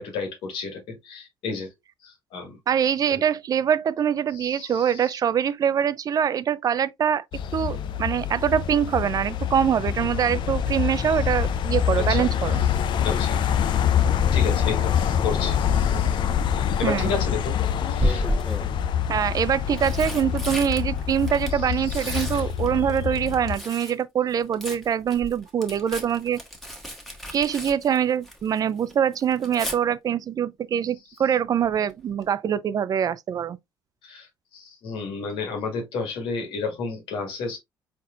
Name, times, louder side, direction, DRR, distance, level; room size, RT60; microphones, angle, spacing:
voice 1, 0.0-1.7 2.0-2.6 3.1-3.2 4.3-5.2 12.0-12.3 13.0-13.4 14.3-16.2 16.7-17.6 17.8-18.3 21.7-22.3 34.0-37.6, left 4 dB, 80° left, 1.9 m, -32 dB
voice 2, 2.7-7.2 7.5-12.6 16.8-17.1 19.1-26.4 27.3-33.6, right 8 dB, 45° right, 0.4 m, -24 dB
sound 1, 7.3-23.6, left 9 dB, 60° left, 0.6 m, -25 dB
Tearing, 16.5-16.9 18.0-18.7 19.5-24.0 24.3-28.6 28.9-29.8 31.6-31.9 32.2-32.3, equal, 5° left, 1.4 m, -32 dB
4.3 x 4.0 x 2.5 m
cardioid pair, 90°, 9 cm